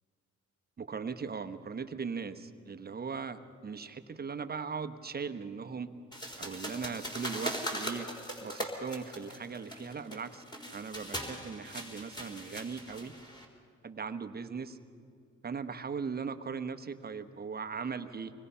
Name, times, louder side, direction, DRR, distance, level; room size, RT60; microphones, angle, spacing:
voice 1, 0.8-5.9 6.4-8.1 8.4-10.4 10.7-13.1 13.8-14.8 15.4-18.3, right 5 dB, 30° right, 8 dB, 1.0 m, -39 dB
sound 1, 6.1-13.4, equal, 15° left, 3.8 m, -40 dB
25.5 x 20.0 x 5.6 m, 2.3 s
cardioid pair, 90°, 30 cm